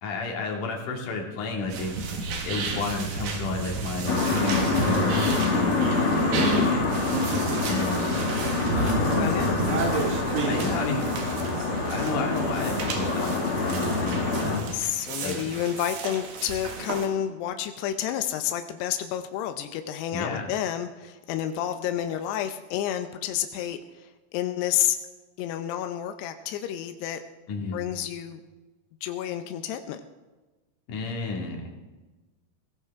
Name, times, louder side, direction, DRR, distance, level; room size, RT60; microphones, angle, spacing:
voice 1, 0.0-7.1 7.6-8.2 8.8-9.3 10.4-11.4 11.8-14.7 15.2-15.6 20.1-20.5 27.5-27.8 30.9-31.8, left 3 dB, 55° left, 0 dB, 3.5 m, -32 dB
sound 1, 1.7-17.1, right 4 dB, 80° right, 3.9 m, -32 dB
sound 2, 4.1-14.6, left 3 dB, 40° left, 2.8 m, -26 dB
voice 2, 9.0-9.6 14.7-25.0 25.4-27.2 27.7-28.4 29.0-30.0, left 11 dB, 90° left, 8 dB, 2.8 m, -30 dB
20.5 x 18.0 x 3.6 m, 1.2 s
omnidirectional pair, 4.6 m